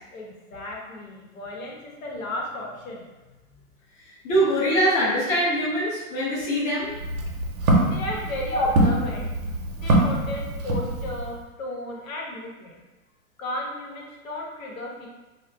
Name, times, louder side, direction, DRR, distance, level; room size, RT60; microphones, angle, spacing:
voice 1, 0.1-3.1 7.8-9.3 9.8-12.8 13.4-15.1, left 1 dB, 65° left, -2 dB, 0.9 m, -34 dB
voice 2, 4.2-6.9 8.5-8.6, equal, 25° left, -7 dB, 0.6 m, -23 dB
Walk footsteps, 6.8-11.4, right 1 dB, 60° right, 0.7 m, -24 dB
2.3 x 2.1 x 3.7 m, 1.1 s
hypercardioid pair, 140°, 45 cm